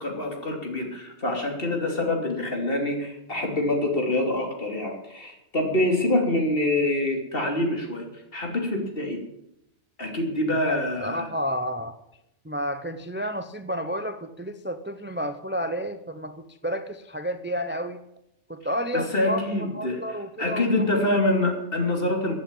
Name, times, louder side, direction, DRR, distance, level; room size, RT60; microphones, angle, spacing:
voice 1, 0.0-9.2 10.0-11.3 18.9-22.3, left 1 dB, 50° left, 2 dB, 3.1 m, -26 dB
voice 2, 10.6-12.0 12.4-18.0 18.5-21.1, equal, 10° right, 10 dB, 0.6 m, -31 dB
15.5 x 8.2 x 8.7 m, 0.81 s
omnidirectional pair, 1.2 m